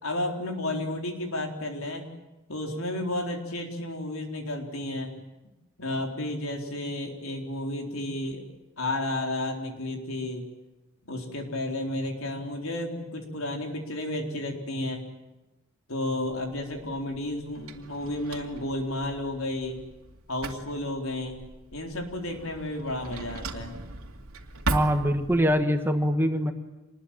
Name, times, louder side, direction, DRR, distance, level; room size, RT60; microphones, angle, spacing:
voice 1, 0.0-2.1 2.5-5.1 5.8-8.4 8.8-10.4 11.0-15.0 15.9-19.8 20.3-21.4 21.7-23.8, left 1 dB, 80° left, 3 dB, 4.1 m, -32 dB
Drawer open or close, 16.3-25.6, right 2 dB, 90° right, 2.5 m, -38 dB
voice 2, 24.7-26.5, equal, 10° right, 6 dB, 1.5 m, -23 dB
27.0 x 21.0 x 9.1 m, 1.0 s
head